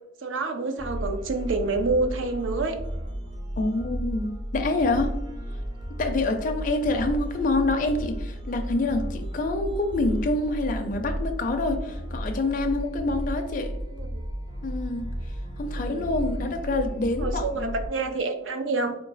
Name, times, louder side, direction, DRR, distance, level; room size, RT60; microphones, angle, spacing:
voice 1, 0.2-2.8 13.9-14.2 15.7-16.1 17.2-18.9, right 3 dB, 75° right, 6 dB, 0.5 m, -28 dB
sound 1, 0.8-17.9, equal, 25° right, 0.5 m, -33 dB
voice 2, 3.6-5.1 6.0-13.7 14.6-15.1 15.6-17.8, left 2 dB, 40° left, 4 dB, 0.4 m, -26 dB
3.8 x 2.2 x 3.9 m, 0.86 s
head